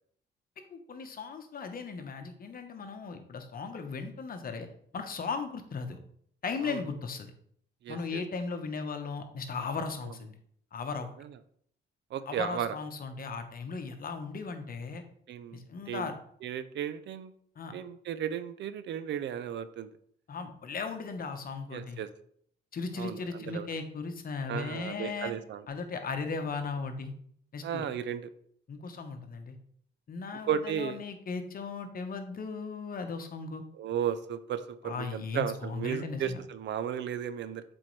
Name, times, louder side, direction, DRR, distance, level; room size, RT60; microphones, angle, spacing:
voice 1, 0.7-4.7 4.9-6.0 6.4-7.3 7.9-10.3 10.7-11.1 12.3-15.0 15.5-16.1 17.6-17.7 20.3-22.0 22.7-25.3 25.7-27.1 27.5-27.9 28.7-29.6 30.1-33.6 34.8-36.4, left 4 dB, 45° left, 7 dB, 1.0 m, -37 dB
voice 2, 7.8-8.2 10.0-10.1 11.2-11.4 12.1-12.8 15.3-16.1 16.4-17.3 17.7-19.9 21.7-22.1 23.0-23.7 24.5-25.7 27.6-28.2 30.5-31.0 33.7-37.6, right 9 dB, 65° right, 13 dB, 0.5 m, -34 dB
7.5 x 4.4 x 3.2 m, 0.64 s
cardioid pair, 90°, 20 cm